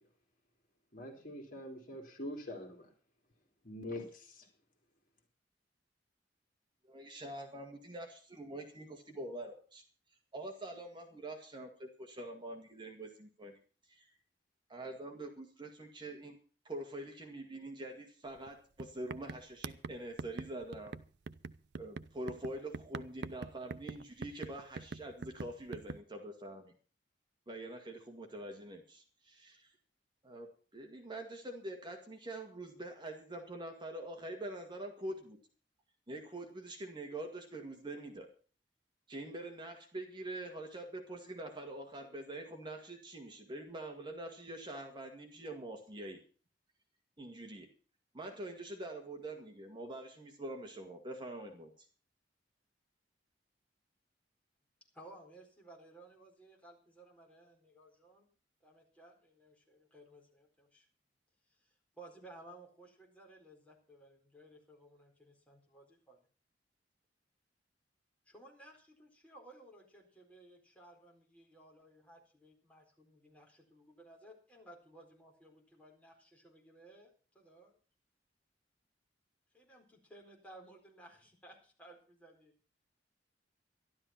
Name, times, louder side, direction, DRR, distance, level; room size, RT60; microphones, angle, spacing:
voice 1, 0.9-2.9 3.6-4.5, left 1 dB, 50° left, 2 dB, 3.5 m, -44 dB
voice 2, 6.8-9.8 10.3-13.5 13.9-14.1 14.7-16.4 16.6-20.9 21.8-26.7 27.5-29.7 30.2-35.4 36.1-38.3 39.1-46.2 47.2-47.7 48.1-51.9, right 1 dB, 25° right, 3 dB, 2.0 m, -45 dB
sound 1, 18.3-18.5 18.8-26.0, right 4 dB, 65° right, 0.6 m, -44 dB
voice 3, 54.9-58.3 58.6-60.9 61.6-66.2 68.3-77.8 79.5-82.5, right 1 dB, 10° left, 0 dB, 4.3 m, -58 dB
12.5 x 12.0 x 5.8 m, 0.40 s
head